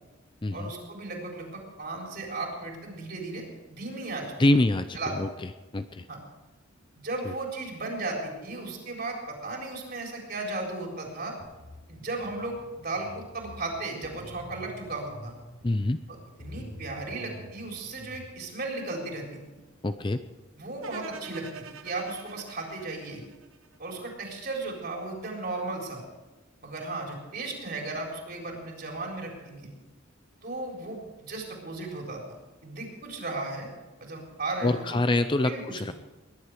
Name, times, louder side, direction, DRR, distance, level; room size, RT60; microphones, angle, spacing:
voice 1, 0.5-4.5 4.9-5.1 6.1-6.2 7.0-11.4 11.9-15.3 16.4-19.4 20.6-23.2 23.8-26.0 26.6-29.7 30.4-32.2 32.6-33.7 34.0-35.0 35.4-35.9, right 2 dB, 45° right, 0 dB, 4.2 m, -35 dB
voice 2, 4.4-6.1 7.2-7.3 15.6-16.0 19.8-20.2 34.6-35.9, left 2 dB, 25° left, 10 dB, 0.5 m, -26 dB
sound 1, 11.4-18.3, left 1 dB, 85° left, 3.6 m, -47 dB
sound 2, 20.8-24.0, right 6 dB, 85° right, 1.1 m, -45 dB
20.5 x 11.0 x 4.9 m, 1.1 s
head